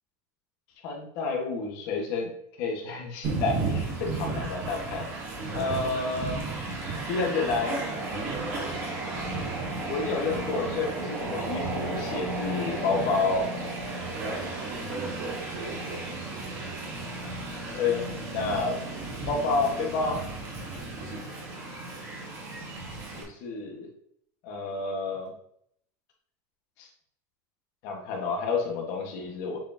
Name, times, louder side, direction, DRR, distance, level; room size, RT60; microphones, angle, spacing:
voice 1, 0.8-2.3 2.6-5.1 5.5-6.4 7.0-7.8 9.9-13.5 17.7-18.8 19.3-20.2 23.1-23.9 24.4-25.3 26.8-26.9 27.8-29.6, left 4 dB, 50° left, 1 dB, 1.7 m, -29 dB
Train, 3.2-23.2, right 2 dB, 35° right, 1.6 m, -34 dB
voice 2, 5.3-6.1 8.1-8.7 14.1-16.6 20.7-21.2, right 2 dB, 60° right, -2 dB, 2.2 m, -39 dB
7.4 x 5.0 x 3.0 m, 0.68 s
cardioid pair, 180°, 8 cm